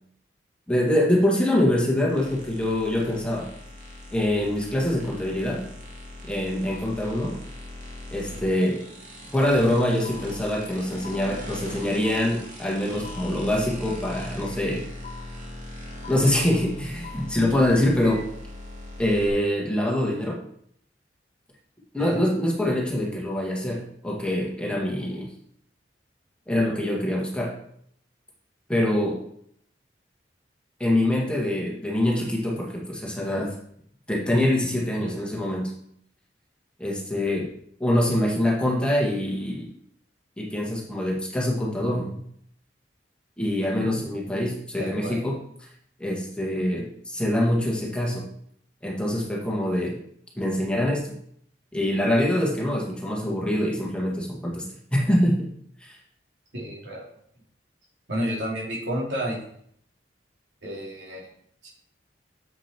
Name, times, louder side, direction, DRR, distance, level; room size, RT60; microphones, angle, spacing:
voice 1, 0.7-3.5 4.1-5.7 6.2-7.4 8.1-8.9 9.3-14.9 16.1-18.3 19.0-20.4 21.9-25.3 26.5-27.6 28.7-29.2 30.8-33.6 34.1-35.7 36.8-37.5 37.8-39.7 40.4-42.2 43.4-45.4 46.0-48.3 48.8-50.0 50.4-51.1 51.7-55.5 55.8-56.0, left 1 dB, 5° left, -3 dB, 1.7 m, -24 dB
sound 1, 2.1-19.3, left 1 dB, 45° right, 2.0 m, -40 dB
sound 2, 10.0-10.2 11.0-11.2 12.0-12.2 13.0-13.2 14.0-14.2 15.0-15.2 16.0-16.2 17.0-17.2 18.0-18.2, left 5 dB, 40° left, 1.1 m, -42 dB
voice 2, 44.8-45.2 56.5-57.0 58.1-59.4 60.6-61.3 61.6-61.7, equal, 75° right, -4 dB, 2.9 m, -31 dB
7.3 x 7.0 x 4.4 m, 0.67 s
head